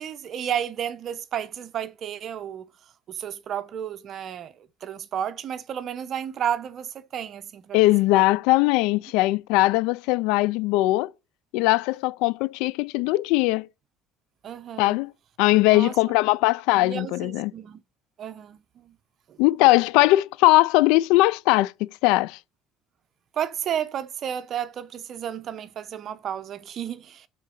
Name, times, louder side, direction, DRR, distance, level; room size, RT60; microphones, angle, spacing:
voice 1, 0.0-2.6 3.1-7.8 8.1-8.2 14.4-15.0 15.7-15.9 16.7-17.8 18.2-18.9 19.3-19.4 23.3-27.3, right 9 dB, 55° right, 0.8 m, -32 dB
voice 2, 7.7-11.1 11.5-13.7 14.8-15.1 15.4-17.5 19.4-22.4, left 19 dB, 85° left, 0.3 m, -20 dB
7.4 x 3.9 x 6.5 m
supercardioid pair, 90°, 0 cm